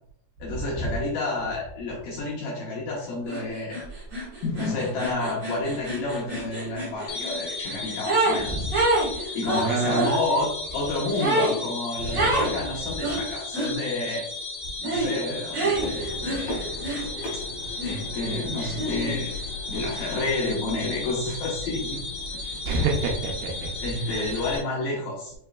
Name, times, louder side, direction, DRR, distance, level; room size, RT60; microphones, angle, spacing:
voice 1, 0.4-3.8 4.4-8.7 9.3-14.3 14.8-16.7 17.3-17.4 17.8-19.4 19.7-22.0 22.3-22.4 23.8-25.3, left 2 dB, 90° left, -3 dB, 1.6 m, -30 dB
sound 1, 3.3-3.4 3.7-8.4 8.7-10.2 11.2-11.6 12.1-12.5 13.0-13.7 14.8-15.1 15.5-17.4 17.8-19.2, right 2 dB, 50° right, 1.3 m, -27 dB
sound 2, 7.1-24.6, left 3 dB, 75° left, 1.2 m, -35 dB
voice 2, 9.6-10.1 12.1-12.4 22.7-23.7, right 3 dB, 80° right, 1 dB, 2.3 m, -27 dB
sound 3, 15.8-24.6, left 1 dB, 55° left, 2.1 m, -39 dB
5.5 x 3.0 x 2.2 m, 0.76 s
omnidirectional pair, 4.3 m